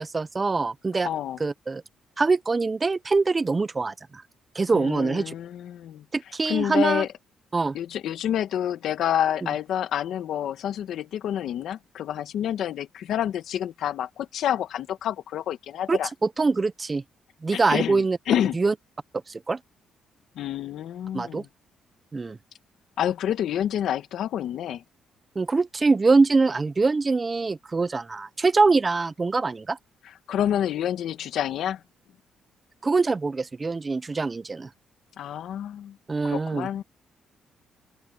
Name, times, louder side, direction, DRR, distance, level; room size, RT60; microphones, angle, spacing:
voice 1, 0.0-1.1 1.4-1.8 2.2-4.2 4.5-5.3 6.1-7.1 7.5-7.8 15.9-17.0 17.4-18.2 18.5-18.7 19.3-19.6 21.1-21.4 22.1-22.4 25.4-29.8 32.8-34.7 36.1-36.7, right 3 dB, 25° right, 0.6 m, -24 dB
voice 2, 1.0-1.4 4.7-6.0 6.5-7.1 7.7-16.1 17.5-18.6 20.4-21.5 23.0-24.8 30.3-31.8 35.2-36.0 36.2-36.8, left 10 dB, 75° left, 1.8 m, -28 dB
cardioid pair, 90°, 0 cm